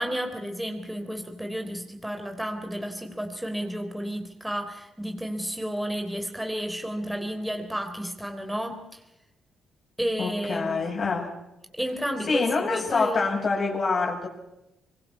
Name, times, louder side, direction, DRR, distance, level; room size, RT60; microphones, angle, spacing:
voice 1, 0.0-9.0 10.0-11.2 11.7-13.3, equal, 5° right, 5 dB, 3.5 m, -32 dB
voice 2, 10.2-11.3 12.2-14.3, left 4 dB, 45° left, 1 dB, 7.8 m, -26 dB
25.0 x 22.5 x 5.6 m, 0.91 s
cardioid pair, 90°, 0 cm